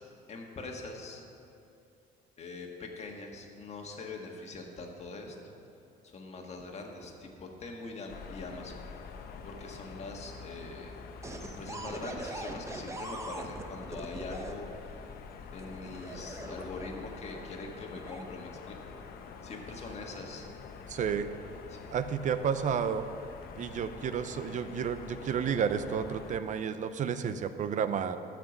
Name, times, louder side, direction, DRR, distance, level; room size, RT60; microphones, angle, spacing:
voice 1, 0.3-1.3 2.4-5.4 6.0-8.8 9.4-10.9 11.4-15.0 15.5-19.0 19.4-20.5 21.7-21.8, left 3 dB, 40° left, 1 dB, 1.6 m, -43 dB
sound 1, 8.1-26.4, left 5 dB, 65° left, 0.9 m, -46 dB
sound 2, 11.2-14.5 15.6-17.2 17.9-18.2, right 2 dB, 15° right, 0.9 m, -41 dB
voice 2, 20.9-21.3 21.9-23.1 23.6-28.2, right 7 dB, 45° right, 11 dB, 0.6 m, -31 dB
13.0 x 5.9 x 7.1 m, 2.7 s
cardioid pair, 110°, 17 cm